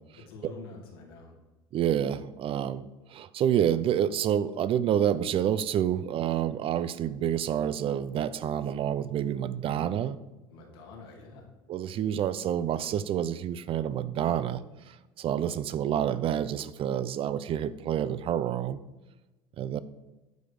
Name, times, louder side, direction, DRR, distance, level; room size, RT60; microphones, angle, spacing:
voice 1, 0.2-1.4 10.5-11.5, left 3 dB, 85° left, 0 dB, 2.1 m, -46 dB
voice 2, 1.7-2.8 3.1-10.2 11.7-14.6 14.9-18.8 19.6-19.8, right 10 dB, 50° right, 15 dB, 0.5 m, -28 dB
9.1 x 5.0 x 4.8 m, 1.1 s
supercardioid pair, 80°, 12 cm